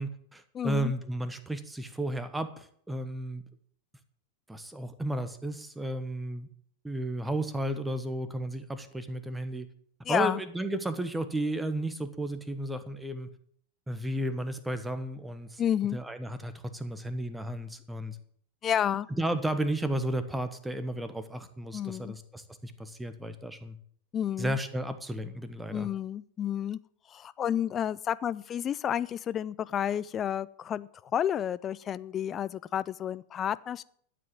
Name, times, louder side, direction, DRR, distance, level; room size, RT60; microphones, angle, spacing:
voice 1, 0.0-3.4 4.5-6.5 6.8-9.7 10.1-13.3 13.9-15.6 15.9-18.2 19.1-23.8 24.4-25.9, right 1 dB, 5° right, 10 dB, 1.3 m, -33 dB
voice 2, 0.5-0.9 10.0-10.4 15.6-16.0 18.6-19.1 21.7-22.1 24.1-24.6 25.7-26.8 27.1-33.8, left 9 dB, 25° left, 17 dB, 0.5 m, -30 dB
12.5 x 7.7 x 7.7 m, 0.62 s
figure-of-eight pair, 90°, 0 cm